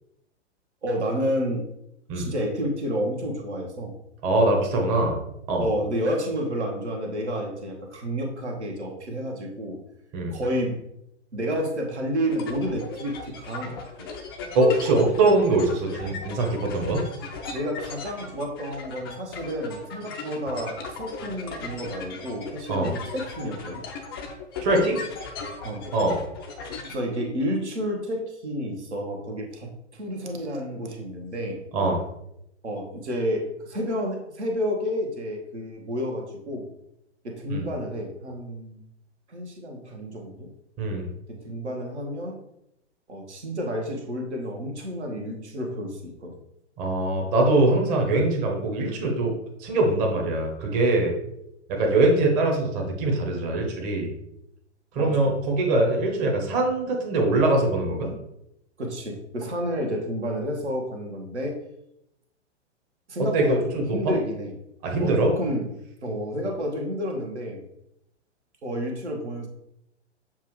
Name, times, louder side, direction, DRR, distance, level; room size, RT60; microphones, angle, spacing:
voice 1, 0.8-1.7 2.1-3.9 5.6-9.8 10.3-10.8 11.3-14.1 17.5-23.8 25.6-25.9 26.9-31.6 32.6-36.7 37.2-38.8 39.3-40.5 41.3-42.4 43.1-46.4 51.8-51.9 55.0-55.4 58.8-61.6 63.1-64.5 65.0-65.7 66.0-67.6 68.6-69.5, equal, 70° right, 2 dB, 1.2 m, -30 dB
voice 2, 4.2-5.2 5.5-5.7 10.1-10.4 14.5-17.0 22.7-22.9 24.6-25.0 25.9-26.2 31.7-32.0 37.5-37.7 40.8-41.0 46.8-49.3 49.6-51.1 51.7-54.1 54.9-58.1 63.2-64.1 64.8-65.3, right 2 dB, 25° right, 1 dB, 0.8 m, -22 dB
sound 1, 12.3-27.0, left 4 dB, 20° left, 0.4 m, -38 dB
7.0 x 2.4 x 3.1 m, 0.81 s
figure-of-eight pair, 110°, 35 cm